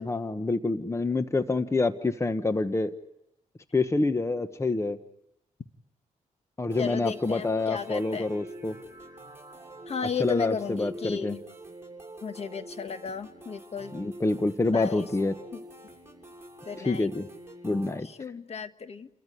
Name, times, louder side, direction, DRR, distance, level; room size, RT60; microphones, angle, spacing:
voice 1, 0.0-2.9 3.7-5.0 6.6-8.7 10.2-11.3 13.9-15.3 16.8-17.3 17.6-18.1, left 3 dB, 20° left, 10 dB, 1.2 m, -27 dB
sound 1, 6.7-18.0, right 1 dB, 20° right, 7.0 m, -46 dB
voice 2, 6.8-8.3 9.9-11.4 12.2-13.9 14.7-15.1 15.5-15.6 16.6-17.1 18.0-19.1, left 6 dB, 50° left, 9 dB, 1.6 m, -34 dB
29.5 x 14.5 x 10.0 m, 0.86 s
cardioid pair, 80°, 14 cm